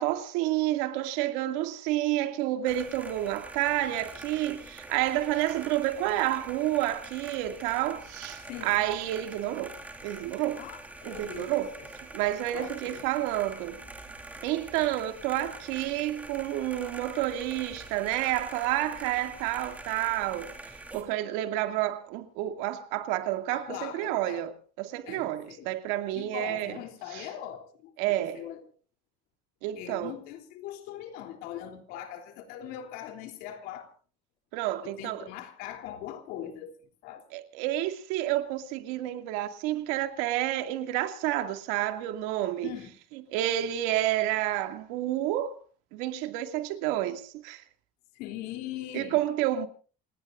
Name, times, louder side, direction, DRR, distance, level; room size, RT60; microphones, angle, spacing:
voice 1, 0.0-9.8 10.0-10.6 11.0-11.7 12.1-13.8 14.4-20.5 20.9-26.8 27.1-27.3 28.0-28.4 29.6-30.1 34.5-35.3 37.3-42.7 43.3-45.6 45.9-47.6 48.9-49.7, right 14 dB, 80° right, 2.4 m, -29 dB
sound 1, 2.7-21.0, right 2 dB, 10° right, 2.9 m, -45 dB
voice 2, 8.5-8.9 10.5-11.9 12.5-13.0 14.8-14.9 23.5-24.4 25.1-25.7 26.2-27.9 28.2-28.6 29.8-33.9 34.8-36.8 37.0-37.3 42.6-42.9 48.1-49.2, left 11 dB, 65° left, 3.4 m, -41 dB
28.5 x 19.0 x 2.6 m
cardioid pair, 170°, 17 cm